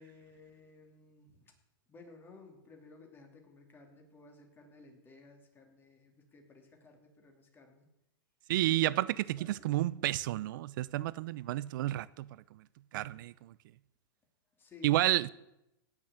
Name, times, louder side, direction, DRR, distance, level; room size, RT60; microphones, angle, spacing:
voice 1, 0.0-1.5 1.9-7.9 8.7-9.7 14.6-15.2, left 3 dB, 15° left, 2.9 m, -56 dB
voice 2, 8.5-12.6 12.9-13.5 14.8-15.3, right 15 dB, 60° right, 0.6 m, -31 dB
17.0 x 6.2 x 8.7 m
hypercardioid pair, 140°, 12 cm